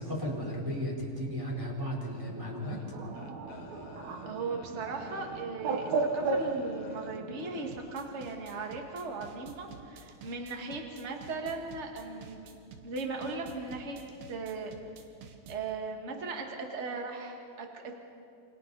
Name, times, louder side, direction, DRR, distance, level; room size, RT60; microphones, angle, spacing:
voice 1, 0.0-3.0, equal, 5° right, -3 dB, 3.3 m, -35 dB
Bird, 2.3-7.8, right 3 dB, 60° right, 2.1 m, -35 dB
sound 1, 2.6-8.0 8.5-8.7, left 5 dB, 65° left, 1.5 m, -51 dB
voice 2, 4.2-12.5 12.8-14.0 14.3-14.7 15.5-17.9, right 3 dB, 35° right, 2 dB, 1.1 m, -38 dB
sound 2, 7.7-15.7, right 5 dB, 85° right, 3.5 m, -50 dB
28.5 x 25.5 x 4.1 m, 2.5 s
omnidirectional pair, 4.6 m